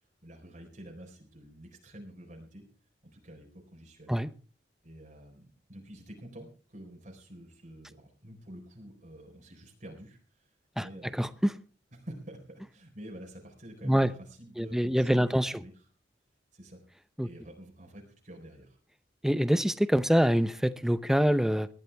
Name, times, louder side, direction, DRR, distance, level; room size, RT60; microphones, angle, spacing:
voice 1, 0.2-2.6 3.1-4.2 4.8-10.5 10.8-11.3 11.9-15.7 16.5-16.8 17.2-18.8, right 1 dB, 45° right, 4.2 m, -48 dB
voice 2, 11.1-11.6 13.8-14.1 14.6-15.5 17.2-17.3 19.2-21.7, equal, 5° right, 0.7 m, -25 dB
20.0 x 13.5 x 3.4 m
head